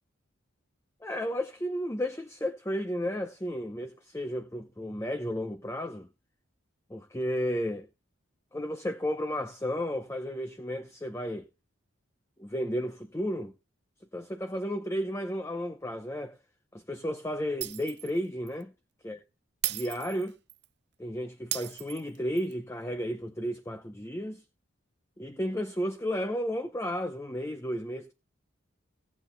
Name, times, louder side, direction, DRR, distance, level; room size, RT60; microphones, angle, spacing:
voice 1, 1.0-6.1 6.9-7.9 8.5-11.5 12.4-13.5 14.1-16.4 16.7-18.7 19.0-19.2 19.7-20.3 21.0-24.4 25.2-28.1, equal, 15° left, 0.6 m, -33 dB
Shatter, 17.6-18.2 18.5-18.6 19.6-20.6 21.5-22.5, right 15 dB, 55° right, 0.6 m, -35 dB
19.0 x 8.4 x 2.2 m
head